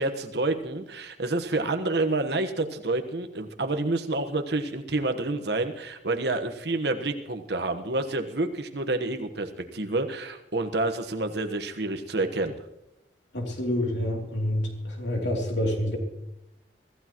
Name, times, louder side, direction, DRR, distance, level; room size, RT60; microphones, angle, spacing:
voice 1, 0.0-12.5, right 2 dB, 65° right, 6 dB, 1.4 m, -28 dB
voice 2, 13.3-16.0, left 1 dB, 80° left, 1 dB, 3.3 m, -28 dB
24.0 x 15.0 x 3.1 m, 0.88 s
head